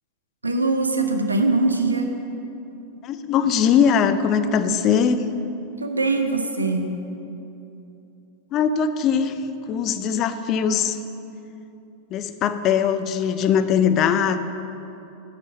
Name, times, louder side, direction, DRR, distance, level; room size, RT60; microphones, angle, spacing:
voice 1, 0.4-2.1 5.8-6.9, right 3 dB, 80° right, 5 dB, 0.7 m, -22 dB
voice 2, 3.0-5.3 8.5-9.4 9.7-11.0 12.1-14.4, left 7 dB, 35° left, 10 dB, 0.4 m, -21 dB
9.0 x 4.3 x 7.2 m, 2.9 s
figure-of-eight pair, 90°, 0 cm